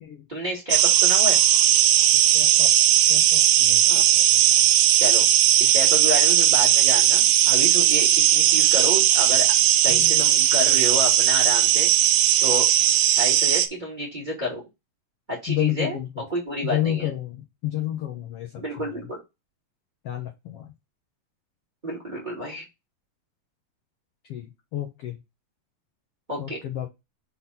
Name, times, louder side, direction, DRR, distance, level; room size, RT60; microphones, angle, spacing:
voice 1, 0.3-1.4 3.9-4.0 5.0-5.3 5.6-9.5 9.8-11.9 12.4-12.7 13.2-14.6 15.3-16.0 16.3-17.1 18.6-19.2 21.8-22.6 26.3-26.6, left 1 dB, 15° right, 2.3 m, -30 dB
sound 1, 0.7-13.7, right 12 dB, 80° right, 2.4 m, -18 dB
voice 2, 2.3-2.7 3.1-4.4 9.9-10.8 15.5-16.1 16.6-18.6 18.9-19.0 20.0-20.7 24.3-25.2 26.4-26.9, left 13 dB, 75° left, 1.4 m, -31 dB
6.4 x 3.9 x 4.2 m
omnidirectional pair, 4.1 m